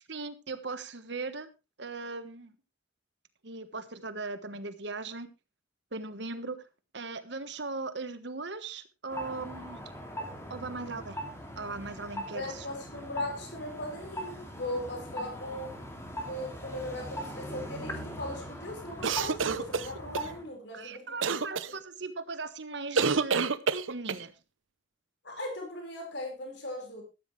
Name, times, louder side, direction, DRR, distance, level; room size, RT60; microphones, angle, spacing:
voice 1, 0.1-1.5 1.8-2.5 3.4-5.3 5.9-6.6 6.9-9.8 10.5-11.2 11.6-12.7 20.7-23.6 23.9-24.3, right 3 dB, 65° right, 12 dB, 1.4 m, -38 dB
sound 1, 9.1-20.5, equal, 15° left, 2.6 m, -41 dB
voice 2, 12.3-15.8 16.2-21.6 25.2-27.0, left 1 dB, 60° left, 2 dB, 5.1 m, -39 dB
sound 2, 19.0-20.3 21.2-21.7 22.9-24.2, right 5 dB, 90° right, 0.8 m, -28 dB
14.0 x 12.0 x 3.3 m, 0.27 s
head